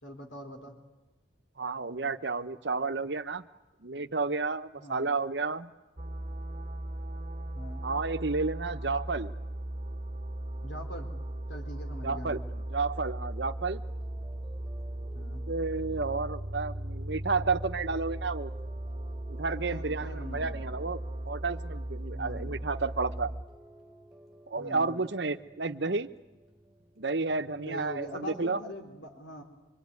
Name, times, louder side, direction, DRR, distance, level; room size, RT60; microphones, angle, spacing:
voice 1, 0.0-0.7 4.8-5.1 7.5-7.9 10.6-11.1 11.5-12.4 15.1-15.5 19.6-20.7 22.0-22.6 24.6-25.0 27.6-29.4, equal, 65° left, 3 dB, 3.8 m, -43 dB
voice 2, 1.6-3.4 3.8-5.7 7.8-9.3 12.0-13.8 15.5-18.5 19.3-23.3 24.5-26.1 27.0-28.6, right 3 dB, 60° right, 10 dB, 1.0 m, -31 dB
sound 1, 6.0-23.4, right 1 dB, 30° right, 1.2 m, -37 dB
sound 2, 11.6-28.4, right 1 dB, ahead, 2.3 m, -58 dB
25.0 x 24.0 x 9.6 m, 1.0 s
head